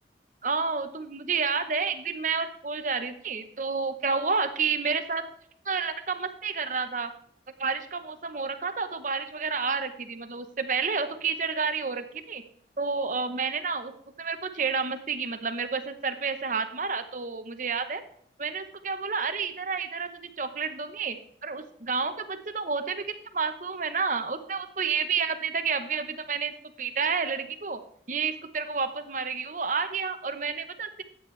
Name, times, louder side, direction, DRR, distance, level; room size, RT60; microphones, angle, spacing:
voice 1, 0.4-5.2 5.6-7.1 7.6-12.4 12.8-13.9 14.2-18.0 18.4-21.2 21.4-26.5 26.8-27.8 28.1-31.0, right 5 dB, 45° right, 8 dB, 0.9 m, -30 dB
13.0 x 8.6 x 3.3 m, 0.65 s
head